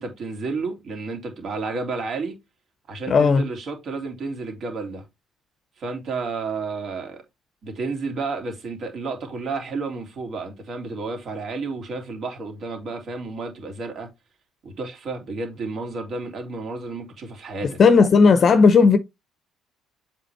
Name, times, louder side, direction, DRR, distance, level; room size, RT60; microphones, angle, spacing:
voice 1, 0.0-2.4 2.9-5.0 5.8-7.2 7.6-14.1 14.6-17.8, right 3 dB, 50° right, 2.6 m, -31 dB
voice 2, 3.1-3.4 17.8-19.0, left 5 dB, 45° left, 0.7 m, -14 dB
7.4 x 3.9 x 3.4 m
hypercardioid pair, 50°, 0 cm